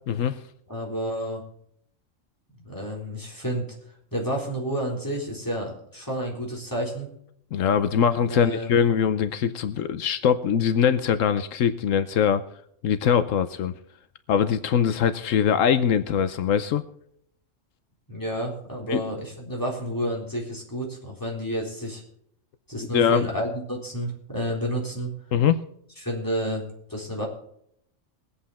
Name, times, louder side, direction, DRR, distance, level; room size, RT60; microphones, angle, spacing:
voice 1, 0.1-0.4 7.5-12.4 12.8-13.7 14.3-16.8 18.9-19.0 22.9-23.2 25.3-25.6, left 8 dB, 80° left, 12 dB, 1.1 m, -22 dB
voice 2, 0.7-1.4 2.6-3.6 4.1-7.1 8.3-8.8 18.1-22.0 22.7-25.1 26.0-26.6 26.9-27.3, equal, 15° left, -2 dB, 3.9 m, -30 dB
21.5 x 8.5 x 4.2 m, 0.69 s
omnidirectional pair, 1.3 m